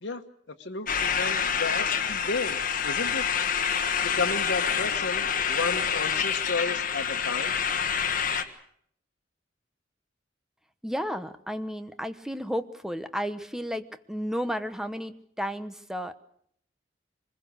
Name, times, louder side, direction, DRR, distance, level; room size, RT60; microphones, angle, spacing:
voice 1, 0.5-3.3 4.0-7.5, left 3 dB, 85° left, 4 dB, 1.4 m, -33 dB
sound 1, 0.9-8.4, left 7 dB, 50° left, 1.6 m, -27 dB
voice 2, 10.8-16.1, equal, 5° right, 9 dB, 1.1 m, -33 dB
24.5 x 21.0 x 6.5 m, 0.67 s
head